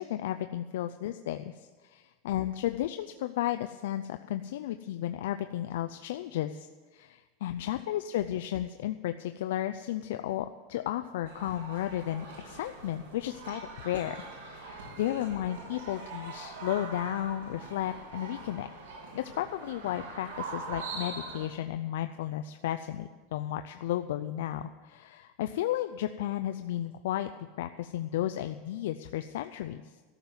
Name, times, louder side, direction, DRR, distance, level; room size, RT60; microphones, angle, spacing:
voice 1, 0.0-6.7 6.9-18.7 19.1-27.3 27.6-29.8, left 12 dB, 80° left, 8 dB, 0.5 m, -33 dB
sound 1, 11.3-21.4, right 3 dB, 90° right, 3.5 m, -43 dB
13.0 x 7.3 x 9.4 m, 1.4 s
supercardioid pair, 135°, 0 cm